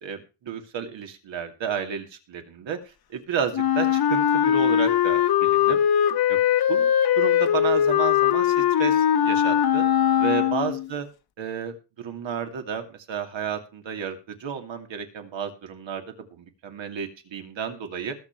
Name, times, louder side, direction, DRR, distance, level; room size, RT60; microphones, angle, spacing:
voice 1, 0.0-2.8 3.1-5.8 6.3-6.4 6.7-9.8 10.2-11.1 11.4-16.0 16.3-18.1, right 7 dB, 85° right, 6 dB, 2.7 m, -32 dB
Wind instrument woodwind instrument, 3.5-10.9, left 10 dB, 55° left, 1.1 m, -21 dB
20.0 x 7.3 x 4.7 m, 0.31 s
wide cardioid pair, 130°, 44 cm